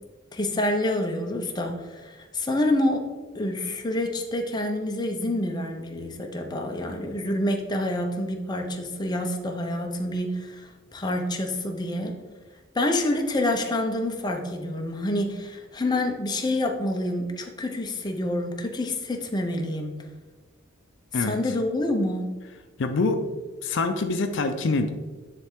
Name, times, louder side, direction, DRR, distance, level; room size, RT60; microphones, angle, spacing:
voice 1, 0.3-3.1 3.3-12.2 12.7-20.0 21.2-22.3, left 1 dB, 20° left, 3 dB, 0.6 m, -27 dB
voice 2, 22.8-23.3 23.6-24.9, left 3 dB, 65° left, 7 dB, 0.5 m, -25 dB
9.8 x 3.3 x 3.6 m, 1.3 s
head